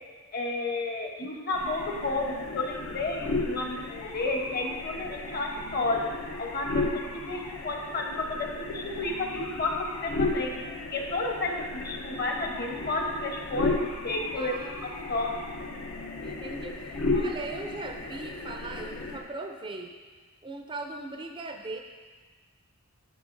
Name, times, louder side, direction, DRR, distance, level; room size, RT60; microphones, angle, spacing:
voice 1, 0.3-6.0 6.4-10.6 10.9-14.5 15.1-15.4, left 2 dB, 45° left, 1 dB, 0.9 m, -31 dB
sound 1, 1.5-19.2, left 3 dB, 80° left, 0.8 m, -34 dB
voice 2, 14.3-15.5 16.2-19.9 20.4-21.8, right 2 dB, 20° right, 4 dB, 0.4 m, -39 dB
11.5 x 6.5 x 2.6 m, 1.4 s
head